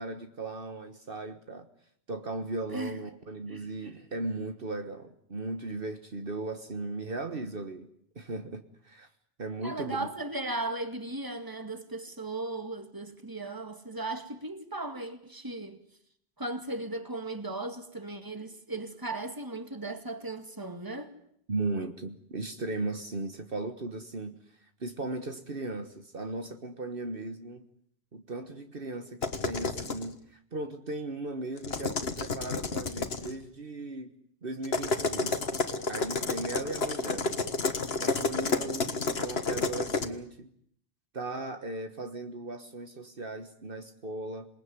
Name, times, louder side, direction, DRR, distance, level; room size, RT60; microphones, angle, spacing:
voice 1, 0.0-1.7 2.1-7.9 8.1-9.1 9.4-10.1 21.5-27.6 28.1-34.1 34.4-35.5 35.9-37.3 38.0-40.5 41.1-44.5, right 2 dB, 60° right, 1.6 m, -37 dB
voice 2, 9.6-15.8 16.4-21.1, right 2 dB, 20° right, 2.1 m, -37 dB
sound 1, 29.2-30.1 31.6-33.3 34.6-40.1, left 3 dB, 70° left, 1.8 m, -30 dB
27.5 x 19.5 x 9.6 m
omnidirectional pair, 1.1 m